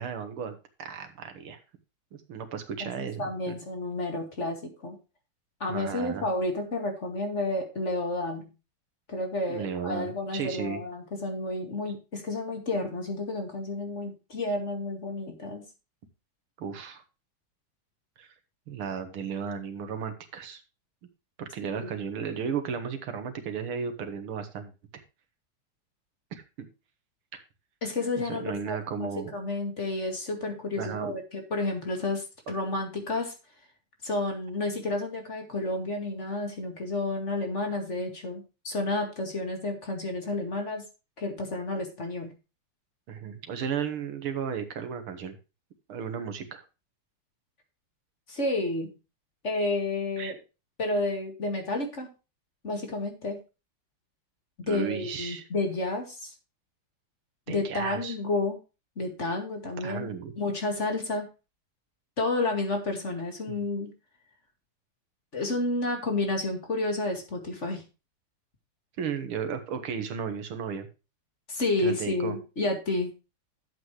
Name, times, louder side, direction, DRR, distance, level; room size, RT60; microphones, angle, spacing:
voice 1, 0.0-1.6 2.3-3.5 5.7-6.3 9.5-10.8 11.9-12.0 16.6-17.0 18.2-18.3 18.7-20.6 21.4-25.0 26.3-26.7 27.3-27.4 28.2-29.3 30.8-31.2 32.5-32.6 43.1-45.4 45.9-46.6 50.2-50.3 54.7-55.5 57.5-58.2 59.8-60.3 63.5-63.6 69.0-70.9 71.8-72.4, right 7 dB, 80° right, 8 dB, 2.3 m, -34 dB
voice 2, 3.2-5.0 5.6-8.5 9.1-15.6 21.8-21.9 27.8-33.4 34.0-40.8 41.2-42.3 48.3-48.9 49.4-50.4 50.8-52.1 52.6-53.4 54.6-56.3 57.5-58.6 59.0-60.1 60.4-61.3 62.2-63.9 65.3-67.8 71.5-73.1, left 2 dB, 35° left, 3 dB, 2.3 m, -31 dB
11.5 x 7.9 x 3.2 m, 0.29 s
omnidirectional pair, 2.3 m